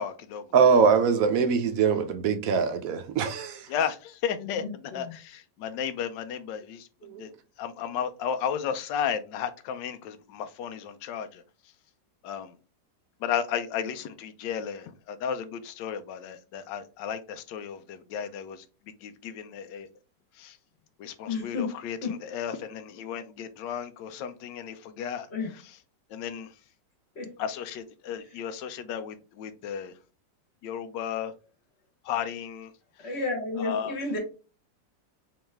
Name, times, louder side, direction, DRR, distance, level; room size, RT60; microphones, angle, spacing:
voice 1, 0.0-0.4 3.7-4.6 4.9-6.9 7.2-7.3 7.6-11.4 12.2-12.5 13.2-18.6 19.0-19.9 20.4-20.5 21.0-22.0 22.2-25.3 26.1-26.5 27.4-29.9 30.6-31.3 32.0-32.7 33.6-33.9, left 8 dB, 80° left, 1.2 m, -33 dB
voice 2, 0.5-3.6 7.0-7.2, right 5 dB, 70° right, 0.8 m, -22 dB
voice 3, 4.4-5.2 21.3-21.7 22.0-22.2 25.3-25.5 27.1-27.3 28.2-28.4 33.0-34.2, left 3 dB, 40° left, 1.3 m, -32 dB
3.8 x 3.1 x 3.3 m
omnidirectional pair, 1.9 m